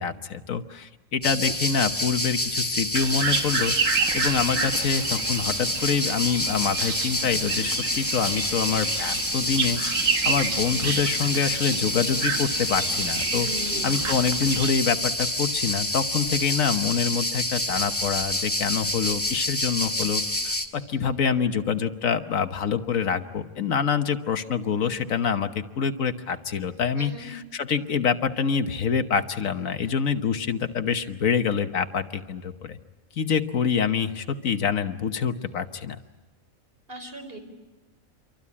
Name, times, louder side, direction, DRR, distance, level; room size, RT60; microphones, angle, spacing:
voice 1, 0.0-3.7 4.1-13.5 13.8-32.8 33.2-36.0, left 6 dB, 75° left, 8 dB, 1.5 m, -26 dB
sound 1, 1.2-20.7, left 1 dB, 10° left, 1.8 m, -28 dB
sound 2, 3.0-14.7, right 5 dB, 70° right, 1.8 m, -30 dB
voice 2, 13.4-14.0 26.9-27.3 36.9-37.4, right 1 dB, 40° right, 4 dB, 4.6 m, -38 dB
27.5 x 24.0 x 8.6 m, 1.1 s
omnidirectional pair, 1.4 m